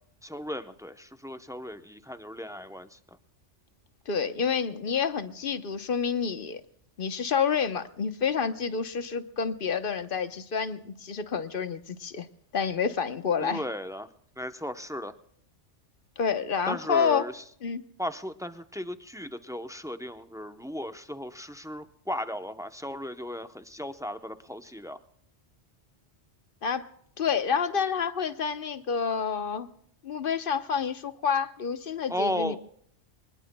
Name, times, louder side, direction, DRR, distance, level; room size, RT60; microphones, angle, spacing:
voice 1, 0.2-3.0 13.4-14.1 14.4-15.1 16.7-17.4 18.0-25.0 32.1-32.6, left 1 dB, 5° right, 9 dB, 0.6 m, -35 dB
voice 2, 4.1-6.6 7.0-12.3 12.5-13.6 16.2-17.2 17.6-17.8 26.6-26.9 27.2-29.7 30.0-32.6, left 6 dB, 50° left, 11 dB, 1.1 m, -28 dB
25.0 x 20.0 x 2.2 m, 0.67 s
omnidirectional pair, 1.2 m